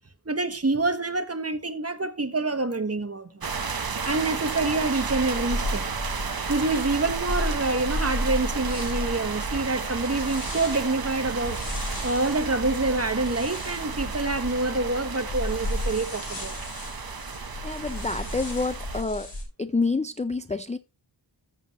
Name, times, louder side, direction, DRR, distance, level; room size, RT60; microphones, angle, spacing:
voice 1, 0.3-3.5 4.0-5.9 6.5-16.5, right 2 dB, 30° right, 1.2 m, -27 dB
sound 1, 3.4-19.0, right 5 dB, 50° right, 1.1 m, -33 dB
sound 2, 5.0-19.4, left 1 dB, 70° left, 4.9 m, -34 dB
voice 2, 17.6-19.3 19.6-20.8, left 3 dB, 15° left, 0.4 m, -28 dB
14.0 x 7.6 x 3.0 m
wide cardioid pair, 75°, 45 cm